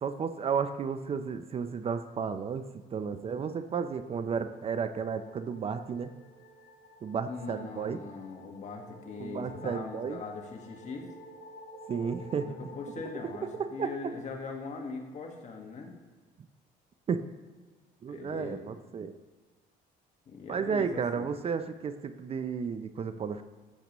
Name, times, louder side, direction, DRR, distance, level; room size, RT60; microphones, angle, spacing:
voice 1, 0.0-6.1 7.0-8.0 9.2-10.2 11.9-12.6 13.4-13.9 17.1-17.3 18.0-19.1 20.5-23.4, right 6 dB, 35° right, 10 dB, 0.5 m, -33 dB
sound 1, 3.7-14.6, equal, 80° left, 2.8 m, -52 dB
voice 2, 7.3-11.1 12.4-15.9 18.1-18.6 20.2-21.3, left 4 dB, 45° left, 2 dB, 1.6 m, -41 dB
13.5 x 6.8 x 3.0 m, 1.4 s
cardioid pair, 110°, 17 cm